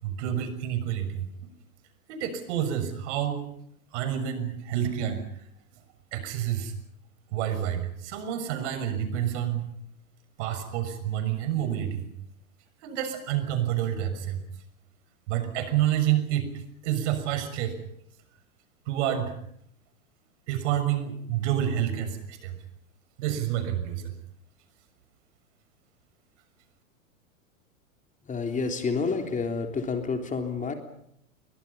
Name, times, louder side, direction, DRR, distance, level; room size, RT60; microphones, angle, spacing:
voice 1, 0.0-1.3 2.1-3.4 3.9-5.4 6.1-6.7 7.3-9.7 10.4-12.1 12.8-14.4 15.3-17.8 18.8-19.3 20.5-22.6 23.2-24.1, right 10 dB, 55° right, 9 dB, 6.6 m, -28 dB
voice 2, 28.3-30.7, left 4 dB, 20° left, 5 dB, 3.5 m, -29 dB
29.0 x 23.5 x 5.6 m, 0.71 s
hypercardioid pair, 100°, 41 cm